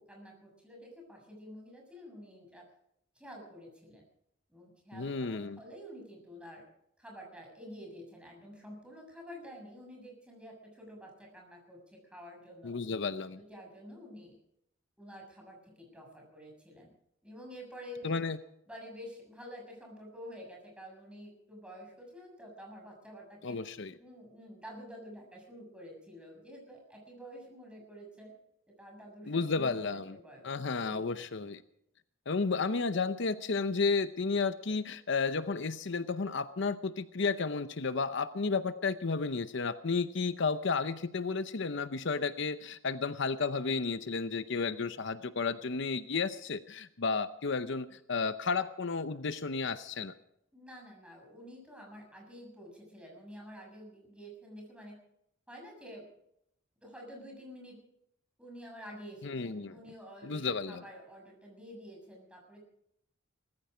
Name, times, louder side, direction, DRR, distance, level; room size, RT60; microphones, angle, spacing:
voice 1, 0.0-2.6 3.2-4.0 4.5-6.6 7.0-12.7 13.4-14.4 15.0-16.9 17.2-18.1 18.7-23.6 24.0-28.3 28.7-31.2 50.5-55.0 55.5-56.1 56.8-57.8 58.4-62.6, equal, 5° right, 0 dB, 6.9 m, -49 dB
voice 2, 4.9-5.6 12.6-13.4 18.0-18.4 23.4-23.9 29.3-30.2 30.4-31.6 32.3-50.1 59.2-59.7 60.2-60.8, left 4 dB, 65° left, 12 dB, 0.7 m, -32 dB
19.0 x 15.0 x 5.1 m, 0.75 s
head